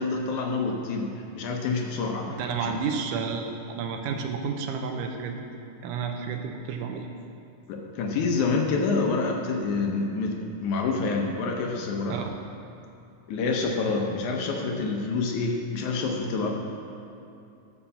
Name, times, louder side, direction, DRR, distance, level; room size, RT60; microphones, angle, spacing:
voice 1, 0.0-2.8 7.7-12.2 13.3-16.5, left 4 dB, 75° left, 2 dB, 2.4 m, -27 dB
voice 2, 2.3-5.4 5.8-7.1 12.1-12.3, right 5 dB, 80° right, 3 dB, 2.4 m, -31 dB
13.0 x 5.5 x 7.1 m, 2.7 s
omnidirectional pair, 3.7 m